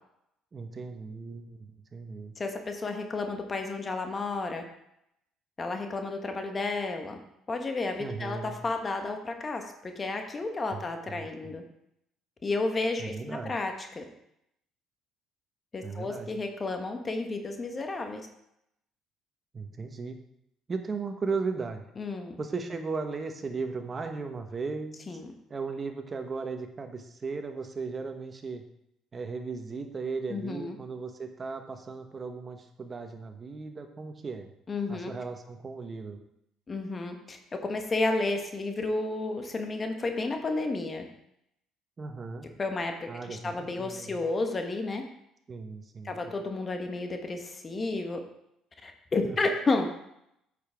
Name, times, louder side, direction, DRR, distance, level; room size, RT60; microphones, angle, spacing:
voice 1, 0.5-2.3 8.0-8.6 10.7-10.8 11.1-11.3 13.0-13.5 15.8-16.3 19.5-20.2 20.7-21.8 22.4-25.2 25.5-28.6 29.1-34.5 34.9-36.2 42.0-42.5 43.1-44.2 45.5-46.2 49.2-49.4, right 4 dB, 35° right, 6 dB, 1.2 m, -36 dB
voice 2, 2.4-4.6 5.6-7.2 7.5-11.6 12.4-14.0 15.7-18.2 22.0-22.4 25.1-25.3 30.3-30.8 34.7-35.1 36.7-41.1 42.6-45.0 46.0-48.2 48.8-49.9, left 3 dB, 30° left, 4 dB, 1.3 m, -32 dB
8.6 x 7.0 x 3.6 m, 0.78 s
supercardioid pair, 70°, 0 cm